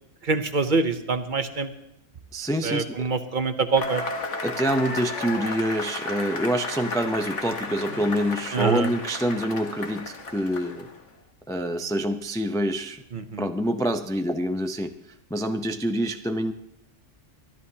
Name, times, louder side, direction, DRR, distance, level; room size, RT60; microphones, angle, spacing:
voice 1, 0.2-1.7 2.6-4.0 8.5-8.9 13.1-13.4, right 4 dB, 45° right, 9 dB, 0.9 m, -25 dB
voice 2, 2.3-3.1 4.4-10.9 11.5-13.0 13.4-14.9 15.3-16.5, equal, 5° left, 6 dB, 0.3 m, -26 dB
Cheering / Applause / Crowd, 3.8-11.0, left 3 dB, 70° left, 1.6 m, -33 dB
23.5 x 13.5 x 2.8 m, 0.82 s
omnidirectional pair, 1.3 m